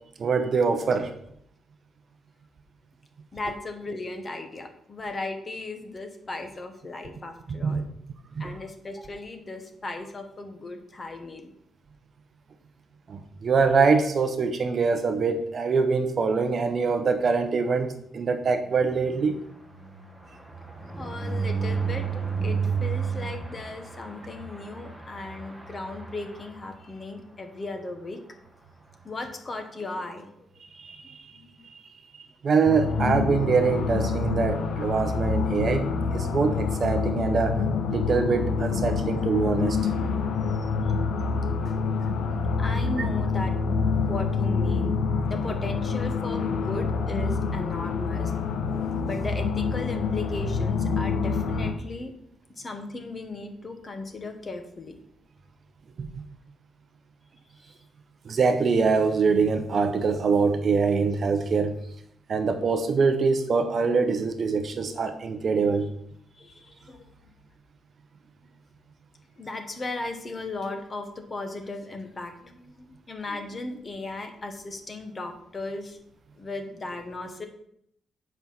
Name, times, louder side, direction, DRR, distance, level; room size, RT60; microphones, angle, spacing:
voice 1, 0.2-1.1 7.6-7.8 8.4-8.5 13.1-19.4 30.8-31.2 32.4-37.6 37.9-39.8 43.0-43.1 56.0-56.1 58.3-61.8 62.3-65.9, right 4 dB, 35° right, 8 dB, 0.7 m, -24 dB
voice 2, 3.3-7.9 8.4-11.5 21.0-28.2 29.0-30.5 31.3-31.6 41.7-41.8 42.6-43.5 44.0-45.0 45.3-48.3 49.0-52.1 52.6-55.0 66.3-67.1 69.4-76.0 76.4-77.5, left 2 dB, 20° left, 5 dB, 1.1 m, -36 dB
sound 1, 18.4-27.2 27.6-27.8 28.0-28.1 28.4-28.7, right 6 dB, ahead, 1.7 m, -33 dB
sound 2, 32.7-51.7, left 4 dB, 65° left, 1.0 m, -27 dB
8.0 x 5.6 x 5.9 m, 0.72 s
cardioid pair, 170°, 0 cm